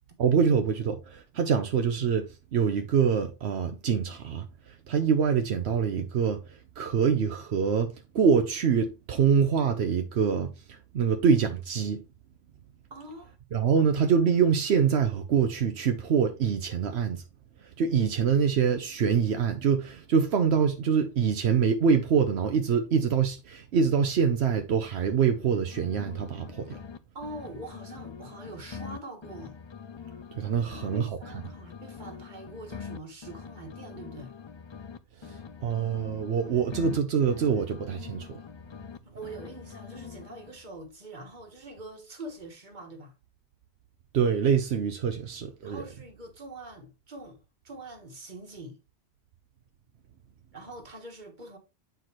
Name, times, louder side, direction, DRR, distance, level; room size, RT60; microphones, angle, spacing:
voice 1, 0.2-12.0 13.5-17.2 17.6-26.8 30.3-31.1 35.2-38.4 44.1-45.8, right 6 dB, 85° right, 1.0 m, -25 dB
voice 2, 12.9-13.3 27.1-29.6 30.7-34.4 39.0-43.1 45.6-48.8 50.5-51.6, right 2 dB, 45° right, 1.6 m, -44 dB
sound 1, 25.3-27.0 27.2-31.0 31.2-35.0 35.2-39.0 39.2-40.6, left 6 dB, 45° left, 0.3 m, -44 dB
8.0 x 4.6 x 3.0 m
omnidirectional pair, 1.1 m